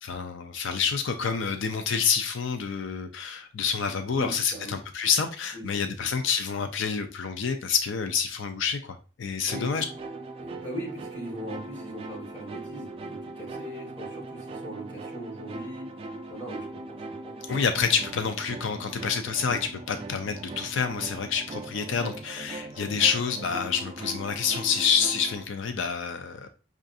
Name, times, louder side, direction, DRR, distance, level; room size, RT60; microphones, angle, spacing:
voice 1, 0.0-9.9 17.5-26.5, left 6 dB, 75° left, 7 dB, 0.4 m, -28 dB
voice 2, 4.1-4.8 5.5-5.8 6.1-6.2 9.5-9.6 10.4-15.9 16.3-17.6, right 1 dB, 10° left, -6 dB, 1.7 m, -40 dB
sound 1, 9.5-25.4, right 2 dB, 30° right, 0.3 m, -40 dB
5.5 x 2.5 x 2.5 m, 0.34 s
head